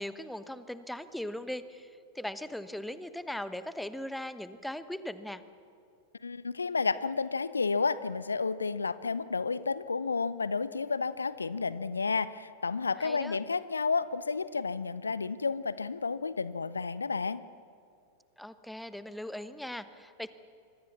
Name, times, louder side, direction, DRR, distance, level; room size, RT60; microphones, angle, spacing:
voice 1, 0.0-1.9 2.1-5.4 13.0-13.4 18.4-20.3, left 1 dB, ahead, 13 dB, 1.0 m, -39 dB
voice 2, 6.2-17.4, left 4 dB, 75° left, 17 dB, 0.6 m, -31 dB
26.0 x 22.5 x 7.1 m, 2.3 s
figure-of-eight pair, 90°, 0 cm